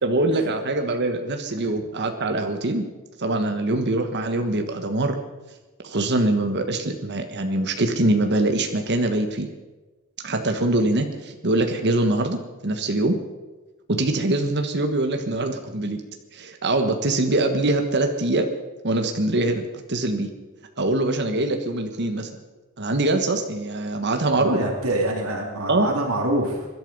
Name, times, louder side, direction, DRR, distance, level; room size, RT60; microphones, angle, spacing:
voice 1, 0.0-2.8 3.2-5.2 5.8-9.5 10.2-13.2 13.9-16.0 16.3-18.5 18.8-20.3 20.8-22.3 22.8-24.6 25.7-25.9, right 2 dB, 50° right, 5 dB, 1.4 m, -23 dB
voice 2, 24.3-26.7, right 1 dB, 80° right, 1 dB, 2.8 m, -25 dB
24.0 x 11.0 x 5.4 m, 1.2 s
head